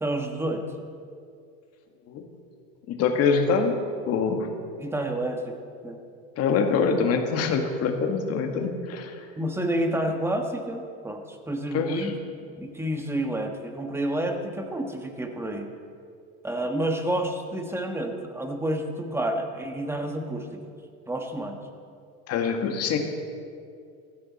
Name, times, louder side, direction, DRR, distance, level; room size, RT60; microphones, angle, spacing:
voice 1, 0.0-0.7 4.8-5.6 5.8-6.0 9.4-12.2 12.6-15.7 16.4-20.6 21.1-21.6, right 1 dB, 10° right, 4 dB, 1.4 m, -29 dB
voice 2, 2.9-3.7 4.1-4.5 6.4-9.2 11.7-12.1 22.3-23.0, left 5 dB, 50° left, 4 dB, 1.8 m, -24 dB
15.5 x 13.0 x 4.2 m, 2.3 s
supercardioid pair, 120°, 32 cm